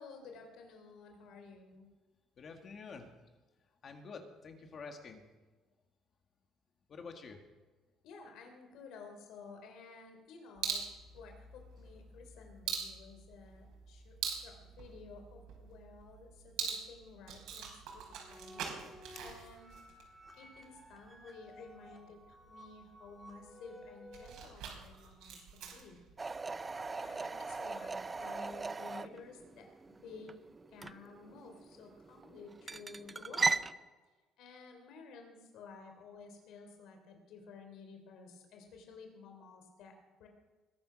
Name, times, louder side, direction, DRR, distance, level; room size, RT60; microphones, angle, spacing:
voice 1, 0.0-1.9 8.0-10.8 11.1-18.9 19.2-19.7 20.4-26.0 26.9-30.3 30.7-33.7 34.4-40.3, left 4 dB, 65° left, 4 dB, 3.5 m, -53 dB
voice 2, 2.4-3.1 3.8-5.2 6.9-7.4, left 4 dB, 35° left, 5 dB, 1.8 m, -48 dB
sound 1, 10.5-28.6, right 7 dB, 75° right, 4.8 m, -45 dB
sound 2, 17.9-24.5, equal, 5° left, 2.9 m, -55 dB
sound 3, 26.2-33.7, right 3 dB, 15° right, 0.4 m, -38 dB
21.5 x 10.5 x 6.3 m, 1.3 s
cardioid pair, 165°, 0 cm